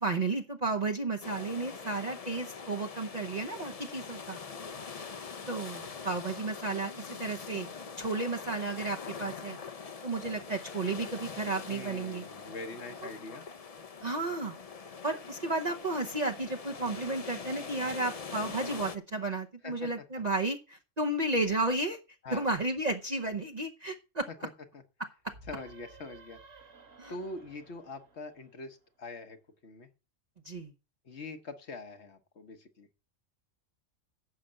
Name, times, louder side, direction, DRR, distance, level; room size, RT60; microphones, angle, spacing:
voice 1, 0.0-4.4 5.5-7.7 8.0-9.6 10.0-12.2 14.0-14.6 15.0-22.0 22.3-24.3 27.0-27.1 30.4-30.7, right 2 dB, 35° right, 2 dB, 0.9 m, -33 dB
sound 1, 1.2-19.0, left 5 dB, 35° left, 0.7 m, -43 dB
voice 2, 11.7-13.5 19.6-20.2 22.2-22.5 24.7-24.8 25.5-26.4 27.1-29.4 29.6-29.9 31.0-32.9, left 3 dB, 60° left, 7 dB, 1.3 m, -43 dB
sound 2, 25.3-28.9, right 3 dB, 85° right, 1.9 m, -55 dB
11.5 x 5.0 x 7.7 m, 0.32 s
omnidirectional pair, 1.3 m